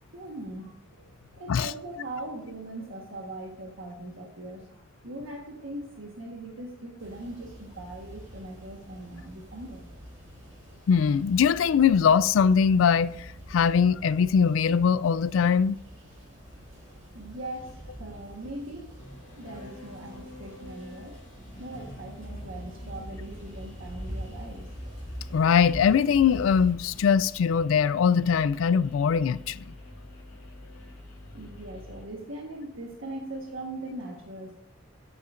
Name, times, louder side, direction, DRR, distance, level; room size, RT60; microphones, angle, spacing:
voice 1, 0.0-9.8 17.1-18.9 19.3-21.2 21.6-24.7 31.3-34.6, right 1 dB, 85° right, 1.4 m, -40 dB
sound 1, 7.0-26.7, equal, 40° right, 3.4 m, -44 dB
voice 2, 10.9-13.1 13.5-15.8 25.3-29.6, left 6 dB, 80° left, 0.3 m, -21 dB
sound 2, 19.0-32.0, left 1 dB, 35° left, 1.9 m, -47 dB
13.0 x 8.2 x 2.6 m
head